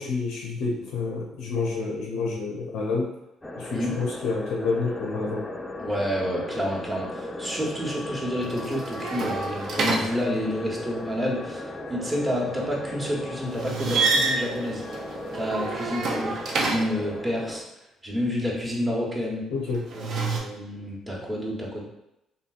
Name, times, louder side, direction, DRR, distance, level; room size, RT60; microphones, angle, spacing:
voice 1, 0.0-3.1 3.6-5.5 19.5-19.8, left 4 dB, 80° left, -1 dB, 0.5 m, -28 dB
sound 1, 3.4-17.6, left 1 dB, 15° left, 0.4 m, -36 dB
voice 2, 5.8-14.8 15.3-17.6 18.0-19.4 19.9-21.8, equal, 25° right, -3 dB, 1.0 m, -29 dB
sound 2, 8.4-10.7 13.5-17.1 19.7-20.4, right 3 dB, 60° right, 0.5 m, -28 dB
2.8 x 2.7 x 2.3 m, 0.87 s
supercardioid pair, 60°, 0 cm